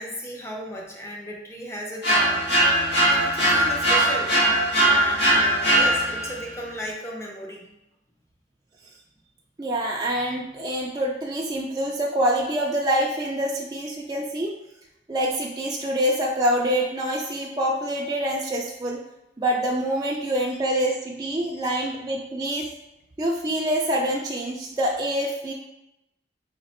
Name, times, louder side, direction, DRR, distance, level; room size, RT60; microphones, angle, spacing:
voice 1, 0.0-2.4 3.1-4.3 4.9-7.7 21.7-21.9, equal, 15° left, -1 dB, 0.7 m, -35 dB
sound 1, 2.0-6.4, right 1 dB, 85° left, 1.5 m, -20 dB
voice 2, 9.6-14.5 15.1-19.0 19.4-22.7 23.2-25.5, right 1 dB, 20° right, -3 dB, 0.4 m, -26 dB
4.0 x 2.9 x 4.2 m, 0.89 s
head